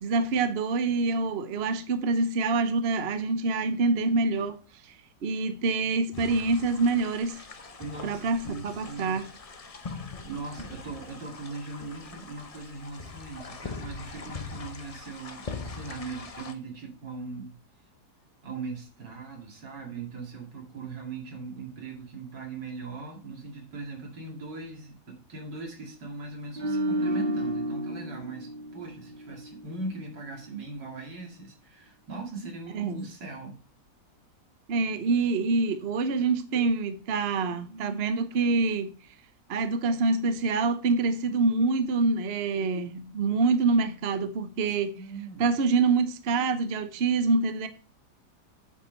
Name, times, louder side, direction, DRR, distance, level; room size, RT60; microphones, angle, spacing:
voice 1, 0.0-4.6 4.8-4.9 5.2-7.4 8.0-9.2 32.7-33.1 34.7-38.9 39.5-45.0 45.4-47.7, right 3 dB, 50° right, 0.8 m, -26 dB
sound 1, 6.1-16.5, left 4 dB, 55° left, 0.4 m, -42 dB
voice 2, 7.8-9.2 10.2-17.6 18.4-33.6 44.7-45.5, right 3 dB, 75° right, 2.9 m, -40 dB
sound 2, 26.6-29.8 30.1-30.4, right 1 dB, 35° right, 1.3 m, -31 dB
8.4 x 5.8 x 4.4 m
omnidirectional pair, 1.9 m